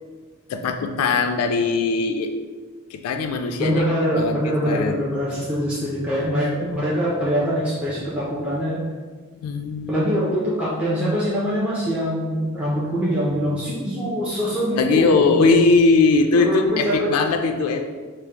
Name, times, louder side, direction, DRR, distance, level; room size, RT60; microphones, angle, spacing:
voice 1, 0.5-2.3 2.9-3.8 4.1-5.0 5.4-5.5 9.4-10.1 14.8-17.9, left 4 dB, 80° left, 6 dB, 0.3 m, -20 dB
voice 2, 3.6-8.8 9.9-15.6 16.3-17.2, equal, 5° right, -9 dB, 0.4 m, -23 dB
4.8 x 2.0 x 2.8 m, 1.4 s
head